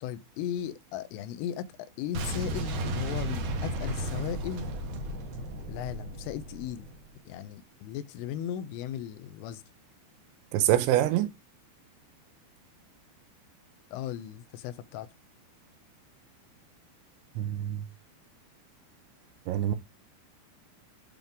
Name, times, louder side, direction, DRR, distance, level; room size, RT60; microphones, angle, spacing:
voice 1, 0.0-4.7 5.7-6.9 7.3-9.6 13.9-15.1, left 10 dB, 85° left, 3.3 m, -36 dB
Boom, 2.1-7.1, right 1 dB, 65° right, 2.6 m, -34 dB
voice 2, 10.5-11.3 17.4-17.9 19.5-19.8, right 12 dB, 80° right, 2.9 m, -25 dB
8.9 x 5.5 x 3.5 m
omnidirectional pair, 5.7 m